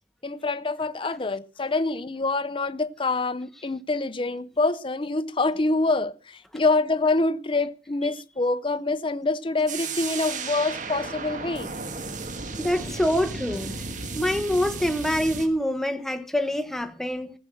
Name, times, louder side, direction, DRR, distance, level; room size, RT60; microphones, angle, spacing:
voice 1, 0.2-11.7, left 3 dB, 30° left, 0.6 m, -26 dB
sound 1, 9.7-15.5, right 4 dB, 45° right, 1.9 m, -34 dB
voice 2, 12.6-13.8 14.2-17.3, equal, ahead, 1.0 m, -25 dB
15.0 x 7.6 x 7.6 m
head